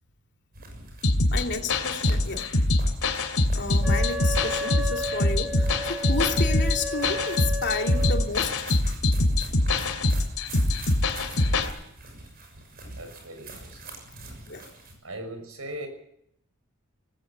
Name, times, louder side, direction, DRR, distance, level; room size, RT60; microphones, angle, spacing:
sound 1, 0.5-15.0, right 2 dB, 45° right, 6.6 m, -44 dB
sound 2, 1.0-11.7, left 2 dB, 85° left, 2.6 m, -24 dB
voice 1, 1.3-2.5 3.5-8.7 12.8-13.0 14.5-14.7, left 3 dB, 55° left, 4 dB, 2.8 m, -31 dB
Wind instrument woodwind instrument, 3.8-8.3, left 1 dB, 5° right, 3.8 m, -33 dB
voice 2, 11.3-11.8 12.9-13.9 15.0-15.9, right 1 dB, 75° right, 6 dB, 6.2 m, -40 dB
19.5 x 16.5 x 8.4 m, 0.73 s
head